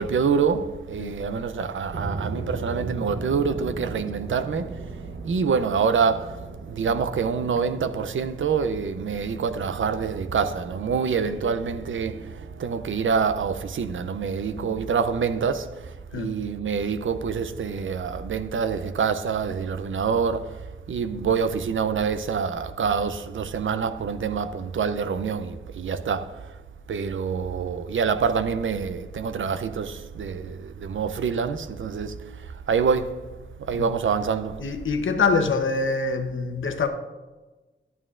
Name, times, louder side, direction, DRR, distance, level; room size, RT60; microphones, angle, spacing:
voice 1, 0.0-4.8 5.2-26.6 26.9-33.2 33.6-34.6, right 6 dB, 85° right, 0.5 m, -26 dB
sound 1, 1.9-17.1, right 3 dB, 65° right, 0.8 m, -40 dB
voice 2, 34.6-36.9, left 4 dB, 85° left, 0.8 m, -25 dB
11.0 x 9.0 x 2.4 m
wide cardioid pair, 115°, 20 cm